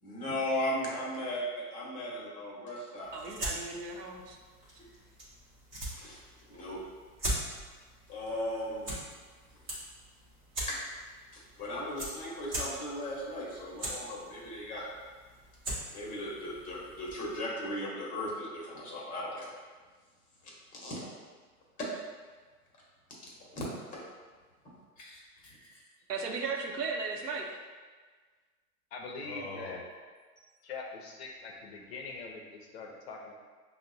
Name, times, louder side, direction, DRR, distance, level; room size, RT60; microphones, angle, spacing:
voice 1, 0.0-3.1 4.8-4.9 6.0-6.2 6.5-6.8 8.1-8.9 10.7-10.8 11.6-14.8 15.9-19.5 20.8-21.0 21.8-21.9 23.5-23.7 23.9-24.0 25.0-25.6 29.2-29.8, left 1 dB, 15° left, -4 dB, 0.8 m, -37 dB
sound 1, 3.0-17.4, right 1 dB, 10° right, 0.4 m, -42 dB
voice 2, 3.1-4.4 26.1-27.6, right 4 dB, 80° right, 1 dB, 0.7 m, -36 dB
voice 3, 28.9-29.8 30.6-33.3, left 3 dB, 45° left, 0 dB, 0.5 m, -42 dB
5.4 x 2.1 x 2.6 m, 1.4 s
hypercardioid pair, 115°, 46 cm